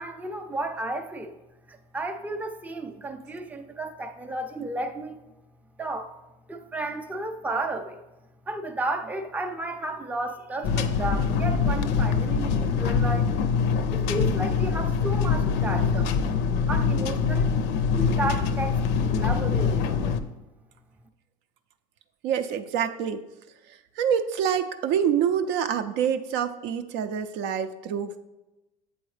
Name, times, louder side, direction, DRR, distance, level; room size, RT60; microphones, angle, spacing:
voice 1, 0.0-1.4 1.7-5.2 5.8-6.1 6.5-8.0 8.5-13.3 13.9-16.1 16.7-17.7 17.9-20.2, right 2 dB, 10° right, 5 dB, 0.5 m, -33 dB
sound 1, 10.6-20.2, left 5 dB, 60° left, 0.5 m, -24 dB
voice 2, 22.2-23.2 24.0-28.2, right 8 dB, 60° right, 9 dB, 0.5 m, -26 dB
7.9 x 3.9 x 3.2 m, 1.0 s
supercardioid pair, 90°, 20 cm